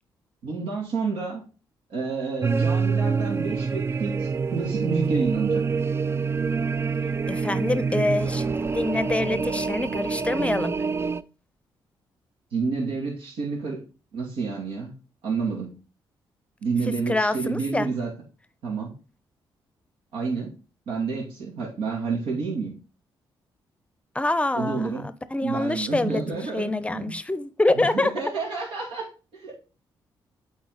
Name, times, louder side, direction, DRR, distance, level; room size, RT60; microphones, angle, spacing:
voice 1, 0.4-1.4 1.9-5.6 12.5-13.8 14.1-14.9 15.2-15.7 16.6-18.1 18.6-18.9 20.1-20.5 20.9-22.7 24.5-25.0 25.4-27.2 27.7-29.5, right 4 dB, 85° right, 2.6 m, -29 dB
sound 1, 2.4-11.2, right 5 dB, 30° right, 0.4 m, -26 dB
voice 2, 7.3-10.7 17.1-17.9 24.1-28.1, left 2 dB, 15° left, 0.6 m, -26 dB
8.5 x 4.2 x 4.0 m
cardioid pair, 85°, 9 cm